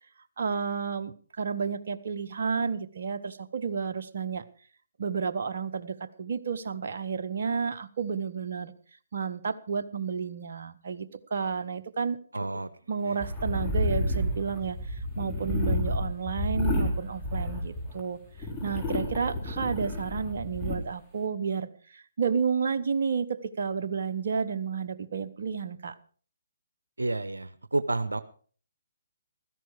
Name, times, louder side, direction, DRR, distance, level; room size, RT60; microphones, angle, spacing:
voice 1, 0.4-4.4 5.0-8.7 9.1-12.2 12.9-18.2 18.6-25.9, right 6 dB, 60° right, 8 dB, 1.0 m, -31 dB
voice 2, 12.3-12.7 13.0-13.2 27.0-28.2, right 2 dB, 85° right, 14 dB, 0.9 m, -30 dB
sound 1, 13.2-18.0 18.4-20.8, left 1 dB, 5° left, 3.9 m, -30 dB
15.5 x 13.5 x 4.8 m, 0.42 s
figure-of-eight pair, 140°, 0 cm